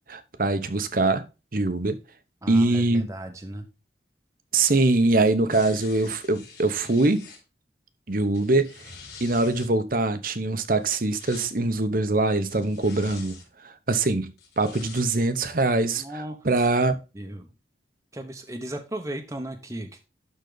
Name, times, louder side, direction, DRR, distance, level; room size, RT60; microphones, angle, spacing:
voice 1, 0.1-1.3 1.5-2.0 2.5-3.1 4.5-7.3 8.1-8.7 9.2-17.0, right 2 dB, 50° right, 0.9 m, -23 dB
voice 2, 2.4-3.7 16.0-16.4 17.1-17.5 18.1-20.1, right 1 dB, 15° right, 1.0 m, -36 dB
sound 1, 5.5-7.4 8.2-9.7 10.8-11.5 12.5-13.5 14.4-15.0 15.6-15.7, left 5 dB, 60° left, 4.7 m, -46 dB
12.0 x 4.1 x 3.9 m
head